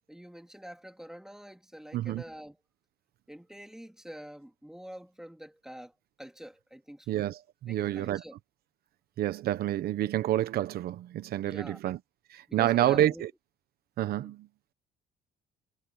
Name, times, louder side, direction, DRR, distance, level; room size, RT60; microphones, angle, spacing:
voice 1, 0.1-2.6 3.3-5.9 6.2-7.1 7.7-8.3 11.4-11.8 12.5-13.3 14.1-14.3, equal, 5° right, 3.3 m, -46 dB
voice 2, 1.9-2.2 7.1-8.2 9.2-12.0 12.3-13.3 14.0-14.5, right 13 dB, 65° right, 1.1 m, -28 dB
cardioid pair, 110°, 17 cm